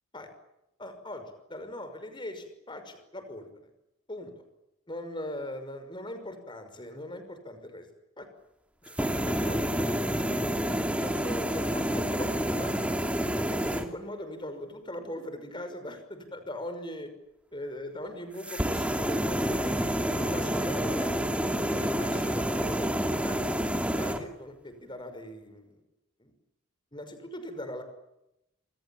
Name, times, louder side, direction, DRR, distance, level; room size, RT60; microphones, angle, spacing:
voice 1, 0.8-3.5 4.1-4.3 4.9-7.9 8.2-8.3 8.8-10.2 11.0-12.8 13.4-17.1 17.5-19.8 20.2-21.2 21.6-23.0 23.2-25.8 26.2-26.3 26.9-27.8, left 1 dB, 20° left, 8 dB, 5.8 m, -40 dB
sound 1, 8.9-13.9 18.4-24.2, equal, 5° right, 2.6 m, -28 dB
27.5 x 27.0 x 7.3 m, 0.88 s
head